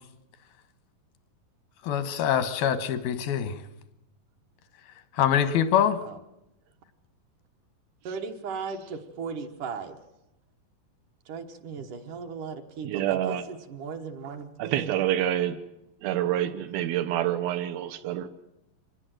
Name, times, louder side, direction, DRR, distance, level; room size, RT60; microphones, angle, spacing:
voice 1, 1.8-3.6 5.2-6.0, left 9 dB, 90° left, 3.1 m, -24 dB
voice 2, 8.0-10.0 11.3-15.0, right 5 dB, 65° right, 2.7 m, -37 dB
voice 3, 12.8-13.4 14.6-15.6 16.0-18.3, right 12 dB, 85° right, 2.9 m, -27 dB
24.5 x 19.5 x 7.8 m
omnidirectional pair, 4.2 m